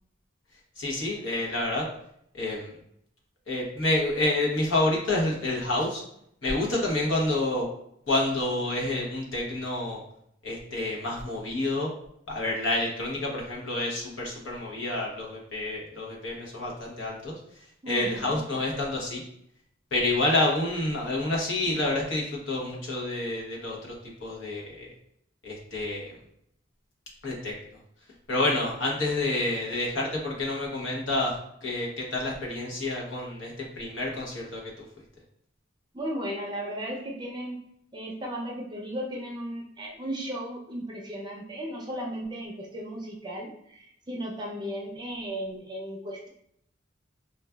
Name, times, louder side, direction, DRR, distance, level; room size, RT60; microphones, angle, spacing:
voice 1, 0.8-1.8 2.3-2.7 3.5-6.0 6.4-7.7 8.1-10.0 10.4-11.9 12.3-17.3 17.9-19.2 19.9-24.9 25.4-26.2 27.2-27.5 28.3-34.6, left 2 dB, 75° left, -2 dB, 0.9 m, -28 dB
voice 2, 17.8-18.2 35.9-37.6 37.9-46.3, equal, 20° right, -1 dB, 0.5 m, -35 dB
3.9 x 2.3 x 2.3 m, 0.72 s
head